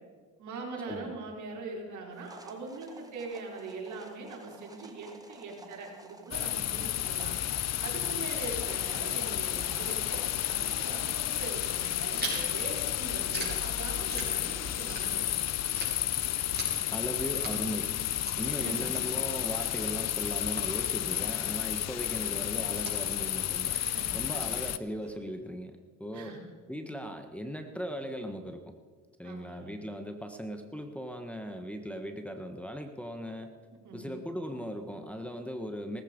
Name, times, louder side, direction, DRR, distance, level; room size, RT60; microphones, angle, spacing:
voice 1, 0.4-7.4 7.8-15.3 18.4-19.1 20.9-21.0 23.8-24.7 26.1-26.4 29.2-29.7 33.8-34.1, right 3 dB, 75° right, -1 dB, 4.5 m, -42 dB
sound 1, 2.1-11.1, right 2 dB, 10° right, 1.9 m, -52 dB
sound 2, 6.3-24.8, left 12 dB, 60° left, 0.7 m, -32 dB
Chewing mastication, 12.1-15.4 15.7-25.1, right 3 dB, 35° right, 5.9 m, -44 dB
voice 2, 16.9-23.8 24.1-26.4 26.7-28.7 29.2-33.5 33.9-36.0, equal, 5° left, 4 dB, 1.4 m, -38 dB
18.0 x 14.5 x 5.3 m, 1.4 s
cardioid pair, 90°, 30 cm